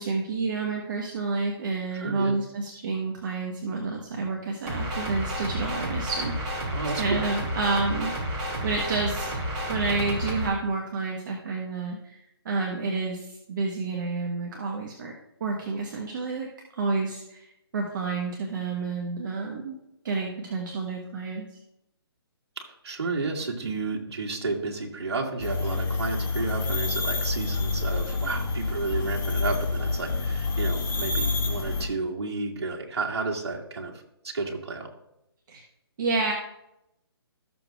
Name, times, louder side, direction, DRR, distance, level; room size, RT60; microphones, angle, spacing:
voice 1, 0.0-8.1 8.4-9.3 9.7-12.2 12.4-15.1 15.4-16.5 16.7-17.5 17.7-19.8 20.0-21.5 35.5-35.6 36.0-36.3, right 3 dB, 50° right, 0 dB, 1.4 m, -29 dB
voice 2, 1.9-2.4 6.7-7.2 22.6-33.9 34.2-34.9, right 3 dB, 75° right, -1 dB, 2.3 m, -32 dB
sound 1, 4.7-10.5, equal, 25° right, 3.3 m, -31 dB
sound 2, 25.4-31.9, left 3 dB, 15° left, 1.6 m, -28 dB
13.5 x 7.2 x 2.5 m, 0.83 s
hypercardioid pair, 150°, 14 cm